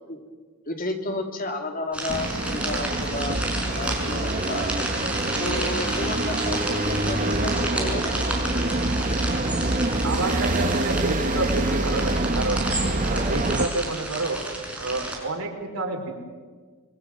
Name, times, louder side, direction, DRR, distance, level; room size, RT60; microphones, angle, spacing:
voice 1, 0.7-3.4 3.7-4.9 5.4-8.5, left 2 dB, 40° left, 4 dB, 2.9 m, -32 dB
sound 1, 1.9-15.2, right 1 dB, 5° right, 5.5 m, -31 dB
sound 2, 2.1-13.7, right 2 dB, 40° right, 1.2 m, -26 dB
voice 2, 10.0-12.7 13.0-14.4 14.8-16.1, right 2 dB, 90° right, 3 dB, 4.7 m, -29 dB
26.0 x 23.5 x 7.7 m, 1.5 s
head